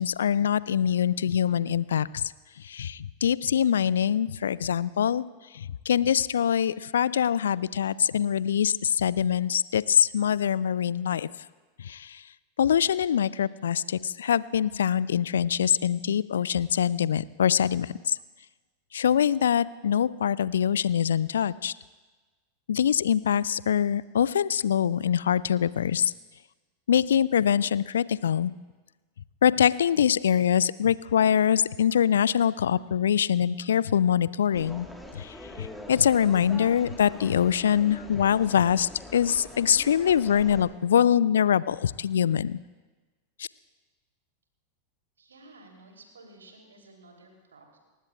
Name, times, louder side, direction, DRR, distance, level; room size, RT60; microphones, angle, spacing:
voice 1, 0.0-2.2 2.6-5.2 5.5-11.3 11.8-12.2 12.6-18.2 18.9-21.7 22.7-26.1 26.9-28.5 29.4-34.9 35.1-42.6 43.4-43.5, left 9 dB, 65° left, 20 dB, 0.3 m, -24 dB
sound 1, 34.5-40.7, left 1 dB, 5° left, 1.6 m, -44 dB
voice 2, 45.2-47.8, right 2 dB, 70° right, 1 dB, 3.3 m, -53 dB
29.5 x 15.5 x 2.4 m, 1.3 s
figure-of-eight pair, 90°, 0 cm